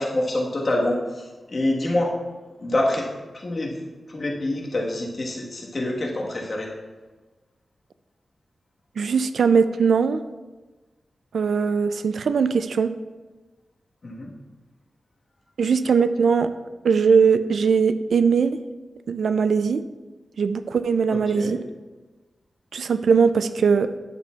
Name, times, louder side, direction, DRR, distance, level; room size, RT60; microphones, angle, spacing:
voice 1, 0.0-2.1 2.6-3.1 3.3-3.8 4.1-6.7 14.0-14.3 21.1-21.5, left 1 dB, 45° left, -2 dB, 1.4 m, -26 dB
voice 2, 9.0-10.2 11.3-12.9 15.6-16.5 16.8-18.6 19.1-19.8 20.4-21.6 22.7-23.9, right 5 dB, 85° right, 11 dB, 0.3 m, -20 dB
10.0 x 6.8 x 2.4 m, 1.2 s
wide cardioid pair, 100°, 0 cm